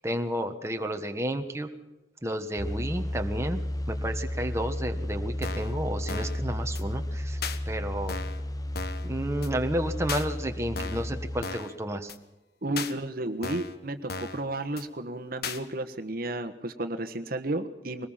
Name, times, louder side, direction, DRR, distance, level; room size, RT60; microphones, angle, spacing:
voice 1, 0.0-1.7 2.2-7.4 7.7-8.2 9.0-12.1, right 1 dB, 15° right, 5 dB, 1.4 m, -31 dB
sound 1, 2.6-11.4, left 1 dB, 20° left, 0.8 m, -33 dB
sound 2, 5.4-5.7 6.1-6.4 6.7-6.8 7.4-7.6 8.1-8.4 8.7-9.1 9.4-9.5 10.1-10.3 10.8-11.1 11.4-11.7 12.1-12.2 12.8-12.9 13.4-13.8 14.1-14.4 14.8-14.9 15.4-15.6, left 4 dB, 60° left, 1.4 m, -35 dB
voice 2, 12.6-18.1, right 2 dB, 50° right, 7 dB, 1.4 m, -32 dB
23.5 x 20.0 x 5.8 m, 1.0 s
head